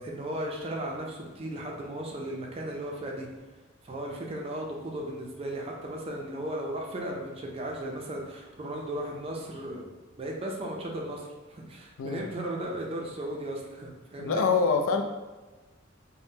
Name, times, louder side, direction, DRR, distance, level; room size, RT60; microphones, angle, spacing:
voice 1, 0.0-3.3 3.8-9.8 10.2-14.4, right 1 dB, 30° right, -1 dB, 0.4 m, -36 dB
voice 2, 14.2-15.0, left 5 dB, 85° left, 5 dB, 0.4 m, -25 dB
3.5 x 2.1 x 2.7 m, 1.2 s
head